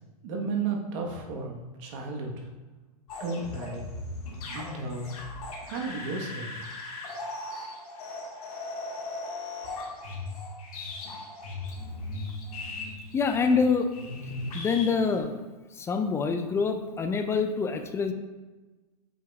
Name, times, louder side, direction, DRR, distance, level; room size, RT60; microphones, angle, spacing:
voice 1, 0.2-2.5 3.2-3.9 4.5-5.2 5.6-6.5, right 4 dB, 50° right, 1 dB, 1.3 m, -33 dB
sound 1, 3.1-15.2, left 2 dB, 65° left, 1.7 m, -38 dB
voice 2, 13.1-13.9 14.5-15.3 15.8-18.1, left 5 dB, 15° left, 7 dB, 0.3 m, -26 dB
7.7 x 5.1 x 2.4 m, 1.2 s
hypercardioid pair, 120°, 20 cm